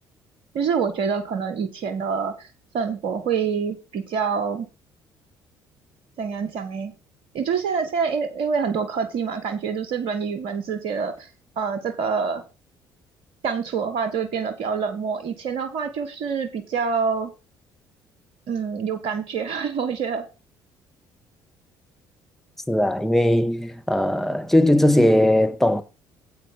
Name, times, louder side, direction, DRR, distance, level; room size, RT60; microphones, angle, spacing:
voice 1, 0.5-2.5 2.7-4.7 6.2-6.9 7.3-11.3 11.6-12.4 13.4-17.3 18.5-20.2, right 6 dB, 60° right, 1.4 m, -26 dB
voice 2, 22.7-25.8, left 1 dB, 5° left, 1.6 m, -19 dB
9.3 x 8.3 x 3.7 m
figure-of-eight pair, 50°, 11 cm